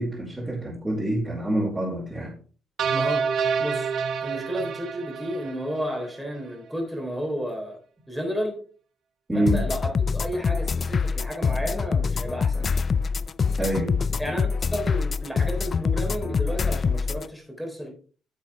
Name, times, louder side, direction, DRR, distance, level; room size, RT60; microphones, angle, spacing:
voice 1, 0.0-2.3 9.3-9.6 13.6-14.0, right 1 dB, 15° right, -8 dB, 4.0 m, -26 dB
sound 1, 2.8-6.1, right 6 dB, 70° right, 1.1 m, -28 dB
voice 2, 2.9-3.2 3.6-3.9 4.2-7.8 8.1-8.6 9.3-12.8 14.2-17.9, equal, ahead, 1 dB, 3.8 m, -32 dB
sound 2, 9.5-17.3, left 5 dB, 45° left, 0.4 m, -25 dB
10.5 x 7.0 x 3.4 m, 0.40 s
cardioid pair, 90°, 0 cm